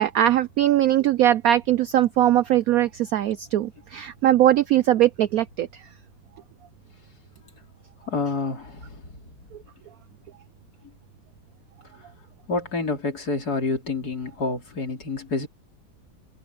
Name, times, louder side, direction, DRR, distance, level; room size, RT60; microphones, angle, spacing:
voice 1, 0.0-5.8, right 12 dB, 85° right, 0.7 m, -20 dB
voice 2, 8.1-9.0 12.5-15.5, left 3 dB, 50° left, 3.7 m, -28 dB
omnidirectional pair, 2.1 m